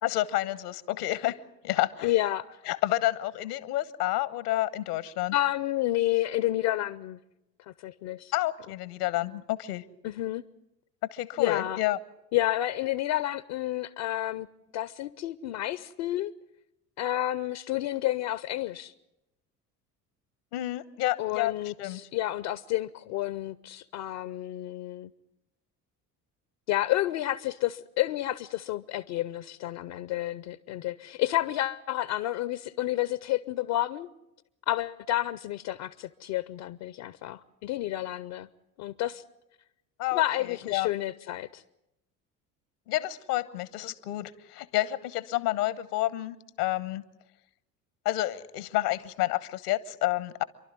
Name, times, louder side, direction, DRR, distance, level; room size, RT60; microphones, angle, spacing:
voice 1, 0.0-1.4 1.6-2.1 2.7-5.4 8.3-9.8 11.1-12.0 20.5-21.5 21.8-22.0 40.0-40.9 42.9-47.0 48.0-50.4, left 16 dB, 70° left, 1.1 m, -29 dB
voice 2, 2.0-2.6 5.3-7.2 7.7-8.3 10.0-10.4 11.4-11.8 12.3-14.5 14.7-16.3 17.0-18.9 21.2-25.1 26.7-34.1 34.7-38.5 38.8-39.2 40.1-41.6, left 14 dB, 55° left, 0.7 m, -30 dB
28.0 x 12.0 x 9.6 m
figure-of-eight pair, 65°, 48 cm